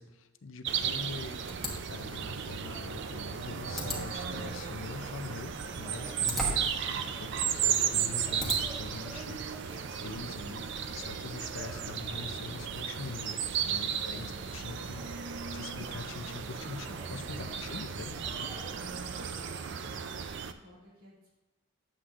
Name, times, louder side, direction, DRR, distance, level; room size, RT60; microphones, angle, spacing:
voice 1, 0.0-1.6 1.9-10.6 10.9-18.3, left 4 dB, 65° left, 9 dB, 0.6 m, -44 dB
sound 1, 0.6-20.5, right 7 dB, 55° right, 0.4 m, -35 dB
sound 2, 1.5-8.9, left 1 dB, ahead, 1.1 m, -41 dB
sound 3, 2.6-20.3, equal, 15° right, 0.8 m, -51 dB
voice 2, 7.3-7.9 13.6-14.8 17.1-17.8 18.5-19.4 19.8-21.3, equal, 90° right, -6 dB, 2.6 m, -54 dB
9.9 x 7.5 x 2.5 m, 1.1 s
head